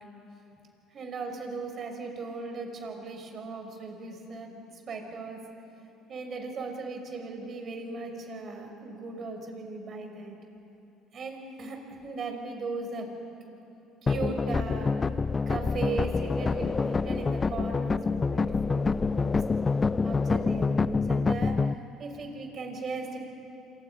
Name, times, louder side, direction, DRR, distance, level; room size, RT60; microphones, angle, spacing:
voice 1, 0.9-5.4 6.1-10.4 11.1-13.1 14.0-14.9 15.5-19.4 20.0-21.6 22.0-23.2, right 3 dB, 45° right, 4 dB, 5.5 m, -37 dB
sound 1, 14.1-21.7, left 4 dB, 30° left, 0.5 m, -27 dB
29.0 x 27.0 x 5.7 m, 2.9 s
hypercardioid pair, 60°, 0 cm